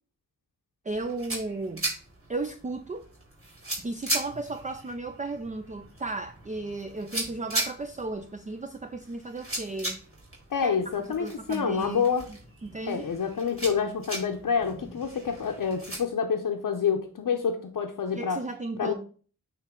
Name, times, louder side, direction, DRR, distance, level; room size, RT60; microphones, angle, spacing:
voice 1, 0.8-1.9 2.3-3.1 3.8-10.1 10.6-12.0 12.3-13.1 18.1-18.9, right 2 dB, 25° right, 0.4 m, -35 dB
sound 1, 0.9-16.0, right 1 dB, 40° right, 3.0 m, -38 dB
voice 2, 10.5-12.3 12.9-18.4 18.8-18.9, left 6 dB, 80° left, 0.7 m, -27 dB
9.0 x 3.2 x 3.7 m
wide cardioid pair, 55°, 33 cm